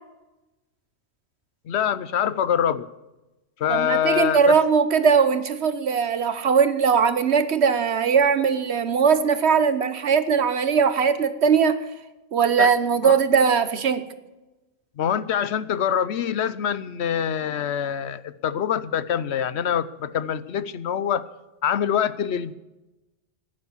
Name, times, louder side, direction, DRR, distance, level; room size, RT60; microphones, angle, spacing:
voice 1, 1.7-2.9 3.6-4.5 12.6-12.7 13.0-13.1 15.0-21.2 21.6-22.5, left 9 dB, 90° left, 16 dB, 1.0 m, -25 dB
voice 2, 3.7-11.8 12.3-14.0, right 6 dB, 90° right, 12 dB, 1.3 m, -20 dB
15.0 x 11.0 x 7.2 m, 1.0 s
omnidirectional pair, 1.1 m